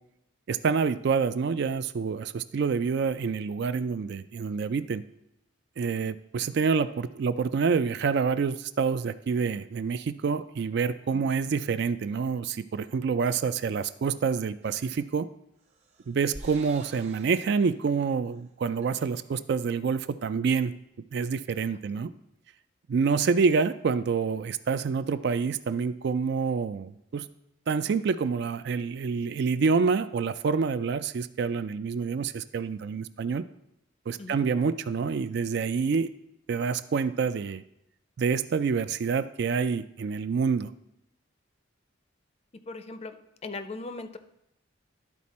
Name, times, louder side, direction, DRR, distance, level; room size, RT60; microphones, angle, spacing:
voice 1, 0.5-5.0 5.8-15.3 16.1-20.7 21.1-22.1 22.9-27.3 27.7-33.4 34.1-36.1 36.5-37.6 38.2-40.7, right 5 dB, 55° right, 13 dB, 0.3 m, -27 dB
sound 1, 14.6-15.1 15.6-17.8 18.2-18.4 18.7-19.4, right 1 dB, 35° right, 0.9 m, -49 dB
voice 2, 21.7-22.1 34.2-34.4 42.7-43.1 43.4-44.2, left 3 dB, 30° left, 10 dB, 0.5 m, -39 dB
12.0 x 4.3 x 4.2 m, 0.83 s
head